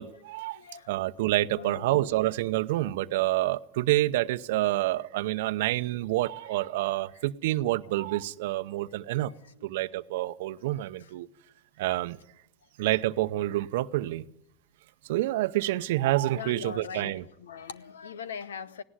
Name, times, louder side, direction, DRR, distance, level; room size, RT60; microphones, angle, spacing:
voice 1, 0.0-0.6 0.9-9.3 9.6-11.3 11.8-12.2 12.8-14.2 15.0-17.2, right 16 dB, 75° right, 0.8 m, -28 dB
voice 2, 0.5-0.9 1.4-2.1 16.3-18.8, left 6 dB, 90° left, 0.9 m, -41 dB
18.5 x 17.5 x 9.7 m
hypercardioid pair, 90°, 0 cm